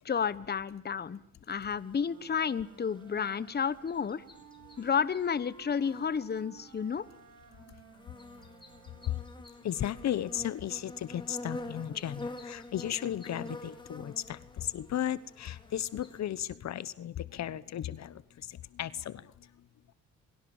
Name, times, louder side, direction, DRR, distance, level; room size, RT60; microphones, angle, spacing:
voice 1, 0.0-1.2 1.5-4.2 4.8-7.0, left 6 dB, 35° left, 17 dB, 1.2 m, -31 dB
sound 1, 1.6-16.2, left 2 dB, 15° left, 4.5 m, -47 dB
sound 2, 2.0-9.4, right 5 dB, 90° right, 7.9 m, -56 dB
voice 2, 9.6-18.2 18.5-19.3, left 11 dB, 60° left, 17 dB, 1.1 m, -35 dB
27.5 x 23.5 x 7.3 m, 0.63 s
cardioid pair, 90°, 30 cm